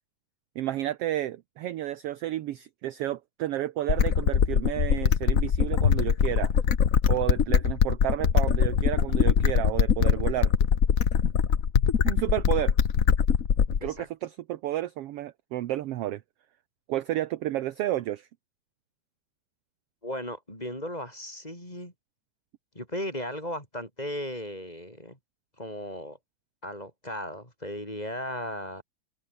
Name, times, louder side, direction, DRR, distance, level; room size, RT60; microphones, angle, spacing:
voice 1, 0.5-6.5 7.1-10.5 12.1-12.7 13.8-16.2 16.9-18.3, right 13 dB, 65° right, 1.6 m, -31 dB
sound 1, 3.9-13.9, left 7 dB, 55° left, 0.9 m, -22 dB
voice 2, 20.0-21.9 22.7-25.2 25.6-26.2 26.6-28.8, left 1 dB, 10° left, 7.9 m, -36 dB
open air
omnidirectional pair, 3.3 m